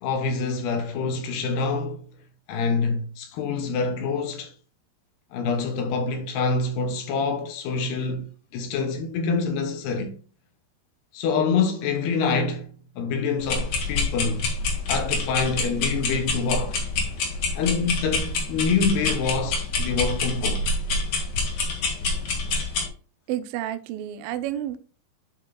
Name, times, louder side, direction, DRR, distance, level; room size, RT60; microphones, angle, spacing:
voice 1, 0.0-2.0 2.5-4.5 5.3-10.2 11.1-12.7 13.0-14.4 14.9-16.8 17.6-20.6, left 4 dB, 80° left, 2.9 m, -26 dB
sound 1, 13.4-22.9, left 3 dB, 55° left, 2.8 m, -27 dB
voice 2, 23.3-24.8, right 12 dB, 85° right, 2.1 m, -30 dB
11.0 x 5.6 x 2.2 m
omnidirectional pair, 4.8 m